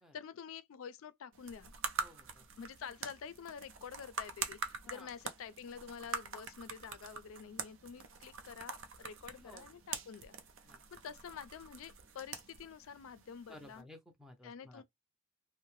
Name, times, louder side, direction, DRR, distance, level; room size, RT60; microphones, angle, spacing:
voice 1, 0.1-1.7 2.6-10.4 10.9-13.9 14.4-14.8, left 7 dB, 80° left, 0.4 m, -48 dB
sound 1, 1.3-13.8, right 6 dB, 65° right, 0.5 m, -45 dB
voice 2, 2.0-2.4 4.8-5.1 9.3-9.6 10.7-10.8 13.5-14.8, left 1 dB, ahead, 0.5 m, -55 dB
2.6 x 2.1 x 3.1 m
head